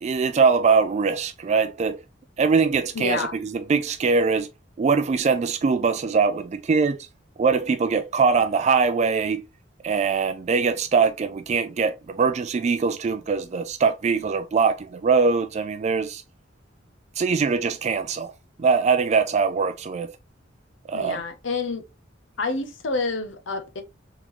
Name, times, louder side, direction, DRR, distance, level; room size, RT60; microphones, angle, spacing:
voice 1, 0.0-2.0 2.4-4.5 4.8-7.1 7.4-9.4 9.8-16.2 17.2-18.3 18.6-20.1 20.9-21.2, right 5 dB, 35° right, 0.3 m, -22 dB
voice 2, 2.9-3.3 20.9-21.8 22.4-23.8, left 3 dB, 80° left, 0.8 m, -28 dB
3.7 x 3.6 x 3.0 m
head